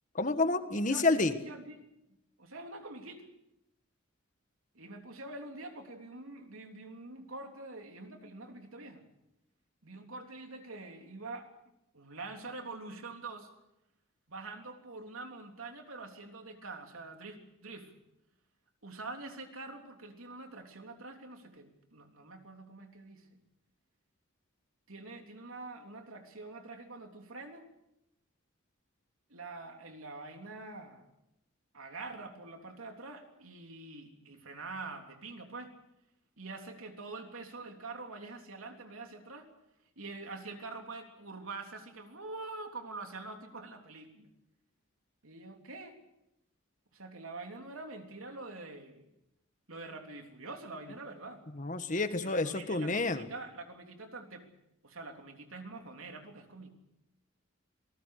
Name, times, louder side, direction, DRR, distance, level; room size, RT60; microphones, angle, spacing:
voice 1, 0.1-1.3 51.6-53.3, left 3 dB, 40° left, 9 dB, 1.5 m, -29 dB
voice 2, 0.9-1.9 2.4-3.3 4.7-9.0 9.8-11.5 11.9-13.5 14.3-17.9 18.8-23.4 24.9-27.6 29.3-31.1 31.7-35.8 36.4-39.5 40.0-44.3 45.2-46.0 46.9-49.1 49.7-51.4 52.2-54.5 54.8-56.7, right 3 dB, 90° right, 4 dB, 3.4 m, -45 dB
27.0 x 19.5 x 6.7 m, 0.86 s
head